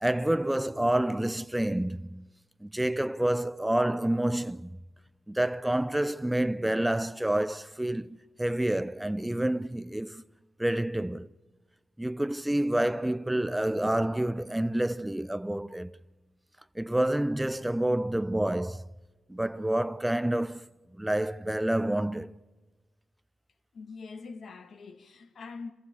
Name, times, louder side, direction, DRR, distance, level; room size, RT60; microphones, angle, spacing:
voice 1, 0.0-2.3 2.6-4.8 5.3-10.2 10.6-11.3 12.0-16.0 16.8-18.8 19.3-20.7 21.0-22.3, right 1 dB, 10° right, 0.7 m, -28 dB
voice 2, 23.7-25.7, left 4 dB, 65° left, 1.8 m, -43 dB
26.0 x 14.5 x 8.5 m
cardioid pair, 60°, 0 cm